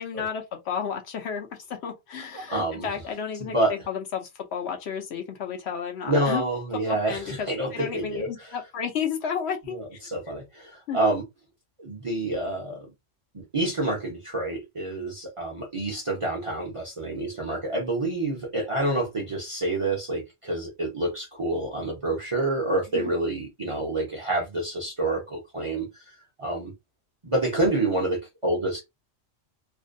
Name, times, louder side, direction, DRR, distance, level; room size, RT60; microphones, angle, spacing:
voice 1, 0.0-1.5 1.8-3.6 3.9-6.4 6.9-10.0 10.9-11.0 22.9-23.1, left 7 dB, 65° left, 0.8 m, -32 dB
voice 2, 2.3-2.9 3.4-3.8 6.1-8.3 9.7-11.2 11.8-12.9 13.3-26.0 26.4-26.7 27.2-28.8, right 2 dB, 35° right, 0.5 m, -28 dB
2.5 x 2.1 x 2.5 m
omnidirectional pair, 1.3 m